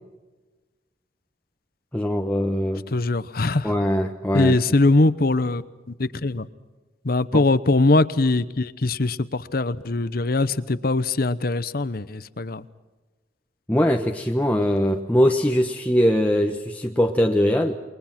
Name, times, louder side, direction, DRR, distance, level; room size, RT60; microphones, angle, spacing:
voice 1, 1.9-2.8 3.6-4.6 7.3-7.4 13.7-17.7, equal, 10° left, 2 dB, 1.1 m, -21 dB
voice 2, 2.9-3.7 4.3-6.5 7.0-12.7, left 2 dB, 55° left, 15 dB, 1.0 m, -22 dB
28.5 x 23.0 x 6.0 m, 1.2 s
head